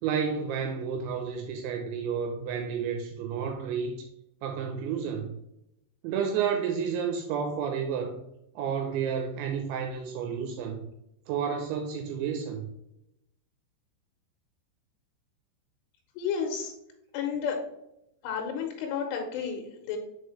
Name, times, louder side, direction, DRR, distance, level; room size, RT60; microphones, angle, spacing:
voice 1, 0.0-4.1 4.4-5.3 6.0-8.2 8.6-10.8 11.3-12.7, right 7 dB, 85° right, 4 dB, 2.8 m, -31 dB
voice 2, 16.2-16.7 17.1-17.6 18.2-20.0, left 7 dB, 90° left, 2 dB, 3.3 m, -31 dB
6.5 x 4.7 x 3.2 m, 0.83 s
omnidirectional pair, 5.5 m